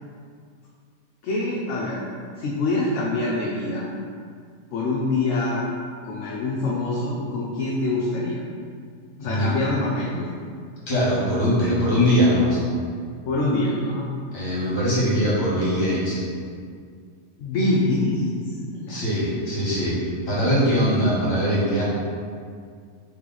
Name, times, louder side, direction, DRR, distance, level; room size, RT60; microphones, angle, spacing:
voice 1, 1.2-2.0 2.4-3.9 4.7-5.6 6.0-8.4 9.2-10.4 13.3-14.1 17.4-18.4 18.7-19.0, left 2 dB, 70° left, -5 dB, 0.8 m, -25 dB
voice 2, 9.2-9.5 10.9-12.6 14.3-16.2 18.9-20.0 20.3-21.8, equal, 45° left, -8 dB, 1.5 m, -21 dB
3.2 x 3.1 x 3.9 m, 2.1 s
omnidirectional pair, 1.5 m